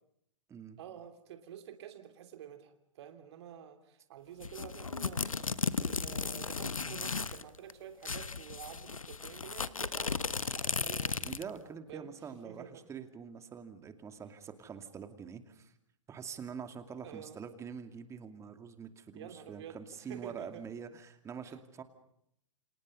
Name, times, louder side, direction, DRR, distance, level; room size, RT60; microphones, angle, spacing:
voice 1, 0.8-10.2 10.5-11.2 11.9-12.8 17.0-17.4 19.1-20.6 21.4-21.5, right 9 dB, 55° right, 7 dB, 3.1 m, -49 dB
sound 1, 4.4-7.4 7.7-7.8 8.0-11.6, left 5 dB, 90° left, 1.1 m, -35 dB
voice 2, 11.2-15.7 16.1-21.8, right 6 dB, 15° right, 8 dB, 2.5 m, -45 dB
29.5 x 27.0 x 5.5 m, 0.72 s
figure-of-eight pair, 115°, 17 cm